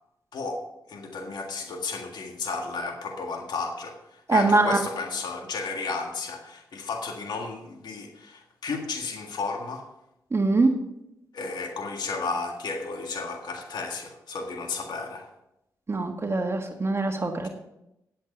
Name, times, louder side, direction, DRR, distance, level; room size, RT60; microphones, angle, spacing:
voice 1, 0.9-9.9 11.3-15.3 17.4-17.5, left 4 dB, 75° left, 3 dB, 1.8 m, -33 dB
voice 2, 4.3-4.8 10.3-10.7 15.9-17.5, right 3 dB, 35° right, 4 dB, 1.7 m, -23 dB
10.0 x 8.6 x 5.4 m, 0.85 s
cardioid pair, 55°, 7 cm